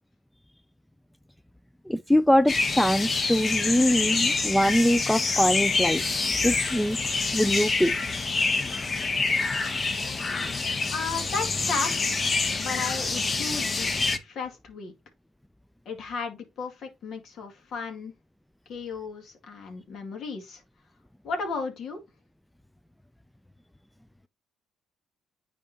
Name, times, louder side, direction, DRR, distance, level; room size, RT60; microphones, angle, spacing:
voice 1, 1.9-6.0 6.4-7.0 7.3-7.9 10.4-10.7, equal, 5° left, 0.4 m, -23 dB
Morning Birds, 2.5-14.2, left 4 dB, 35° left, 1.2 m, -27 dB
voice 2, 10.9-12.2 12.6-14.9 15.9-18.1 18.7-20.6 21.2-22.0, left 4 dB, 60° left, 2.2 m, -34 dB
9.5 x 4.5 x 2.8 m
supercardioid pair, 65°, 0 cm